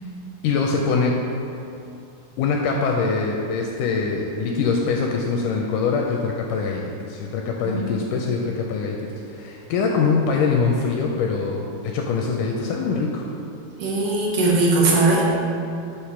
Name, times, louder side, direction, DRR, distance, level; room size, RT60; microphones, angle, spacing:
voice 1, 0.4-1.1 2.4-13.2, left 4 dB, 80° left, 0 dB, 1.9 m, -23 dB
voice 2, 7.6-8.0 13.8-15.2, right 2 dB, 70° right, -4 dB, 2.4 m, -19 dB
8.1 x 3.1 x 5.9 m, 2.6 s
omnidirectional pair, 4.0 m